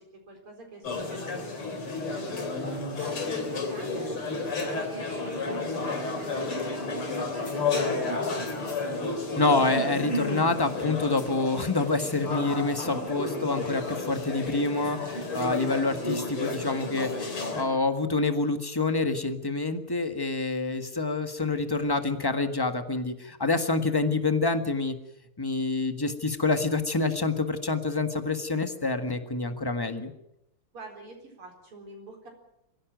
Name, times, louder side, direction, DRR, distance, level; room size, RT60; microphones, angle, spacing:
voice 1, 0.0-2.4 3.0-8.8 30.7-32.3, right 2 dB, 85° right, 2 dB, 5.3 m, -46 dB
sound 1, 0.8-17.6, left 3 dB, 80° left, 4.5 m, -31 dB
voice 2, 9.4-25.0 25.4-30.1, left 3 dB, 10° left, 8 dB, 1.3 m, -27 dB
23.5 x 16.0 x 9.2 m, 0.85 s
omnidirectional pair, 2.4 m